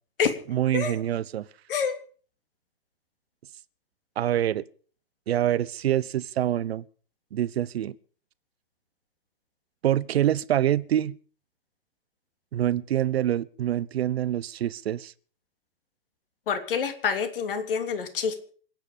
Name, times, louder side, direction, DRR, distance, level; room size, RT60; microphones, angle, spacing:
voice 1, 0.5-1.5 4.2-4.6 5.3-6.8 7.3-7.9 9.8-11.2 12.5-15.1, right 11 dB, 75° right, 1.0 m, -25 dB
voice 2, 16.5-18.4, left 6 dB, 60° left, 3.2 m, -27 dB
27.0 x 9.1 x 5.1 m
hypercardioid pair, 175°, 31 cm